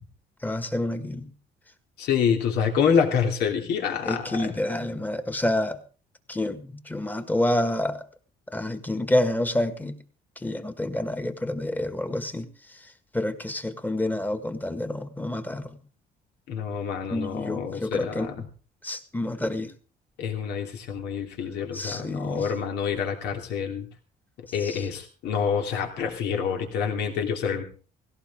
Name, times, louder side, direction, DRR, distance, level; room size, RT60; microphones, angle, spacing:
voice 1, 0.4-1.3 4.0-5.8 6.3-8.0 8.5-10.0 10.4-12.5 13.1-15.8 17.1-18.5 18.8-19.7 21.7-22.5 24.6-24.9, left 1 dB, 10° left, 10 dB, 1.6 m, -28 dB
voice 2, 2.0-4.5 16.5-18.3 20.2-23.9 24.5-27.6, left 7 dB, 80° left, 3 dB, 2.9 m, -27 dB
17.5 x 16.5 x 3.7 m, 0.37 s
cardioid pair, 110°, 17 cm